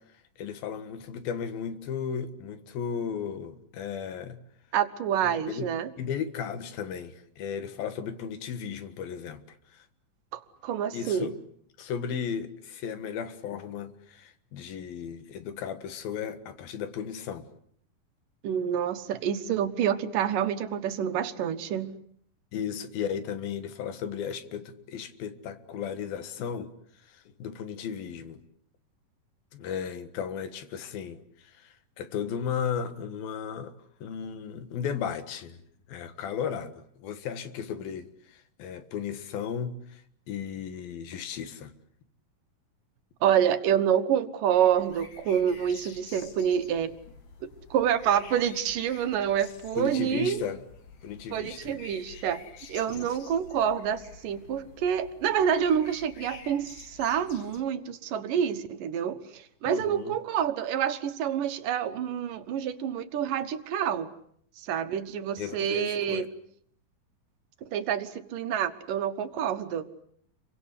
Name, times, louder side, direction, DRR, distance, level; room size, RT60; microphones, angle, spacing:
voice 1, 0.4-4.4 5.5-5.7 6.0-9.9 10.9-11.3 11.8-17.5 22.5-26.7 27.0-28.4 29.5-33.7 34.0-35.6 35.9-41.7 49.8-50.6 51.0-51.8 52.9-53.1 59.7-60.2 65.4-66.3, left 7 dB, 85° left, 3.5 m, -35 dB
voice 2, 4.7-5.9 10.3-11.3 18.4-21.9 43.2-46.9 47.7-50.4 51.3-52.4 52.7-64.1 64.6-66.3 67.7-69.9, right 9 dB, 70° right, 2.9 m, -27 dB
sound 1, 44.5-57.6, left 5 dB, 55° left, 3.2 m, -49 dB
29.5 x 24.0 x 8.4 m
omnidirectional pair, 4.1 m